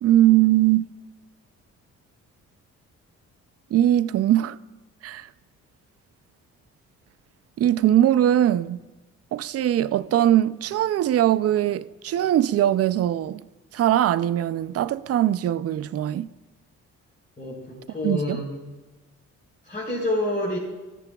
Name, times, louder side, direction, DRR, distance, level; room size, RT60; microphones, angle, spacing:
voice 1, 0.0-0.9 3.7-4.6 5.0-5.3 7.6-8.8 9.3-13.4 13.7-16.3 18.0-18.4, right 12 dB, 50° right, 0.4 m, -21 dB
voice 2, 17.4-18.5 19.6-20.6, left 1 dB, 25° left, 3.8 m, -28 dB
16.0 x 13.5 x 2.3 m
cardioid pair, 90°, 30 cm